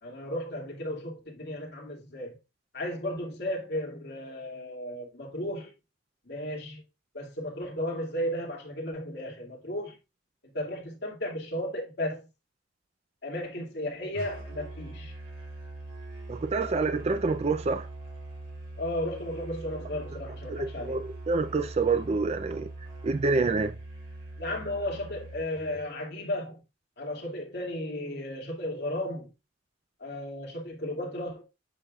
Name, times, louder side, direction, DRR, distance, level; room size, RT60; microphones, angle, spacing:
voice 1, 0.0-2.4 2.7-5.7 6.3-6.8 7.1-10.0 10.5-12.3 13.2-15.1 18.8-21.0 24.4-26.6 27.0-29.3 30.0-31.4, left 1 dB, 60° left, 2.3 m, -34 dB
Musical instrument, 14.1-25.9, right 2 dB, 75° right, 4.6 m, -42 dB
voice 2, 16.3-17.9 20.5-22.7 23.0-23.7, right 3 dB, 35° right, 0.4 m, -27 dB
8.4 x 5.6 x 2.4 m
head